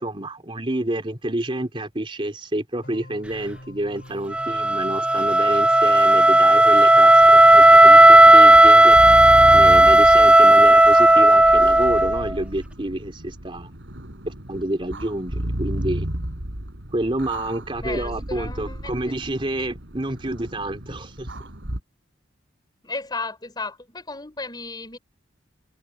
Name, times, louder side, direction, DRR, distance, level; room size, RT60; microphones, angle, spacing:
voice 1, 0.0-13.8 14.3-16.1 16.9-21.3, right 1 dB, 30° right, 3.0 m, -29 dB
sound 1, 2.8-8.3, equal, 55° left, 4.6 m, -43 dB
Wind instrument woodwind instrument, 4.3-12.3, right 1 dB, 5° right, 0.5 m, -12 dB
sound 2, 7.2-21.8, right 1 dB, 75° right, 4.0 m, -33 dB
voice 2, 17.8-19.1 22.8-25.0, left 3 dB, 20° left, 4.4 m, -34 dB
head